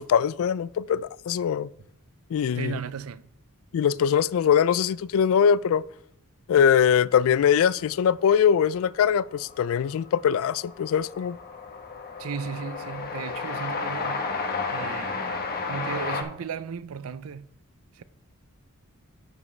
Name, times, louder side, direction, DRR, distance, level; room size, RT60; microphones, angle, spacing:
voice 1, 0.0-1.7 2.3-2.8 3.7-5.8 6.5-11.4, left 8 dB, 65° left, 0.3 m, -22 dB
voice 2, 2.5-3.3 12.2-14.3 14.7-17.5 17.9-18.0, right 6 dB, 65° right, 0.5 m, -36 dB
Train, 8.8-8.9 9.1-16.2, left 4 dB, 45° left, 1.1 m, -32 dB
11.0 x 7.3 x 3.2 m
head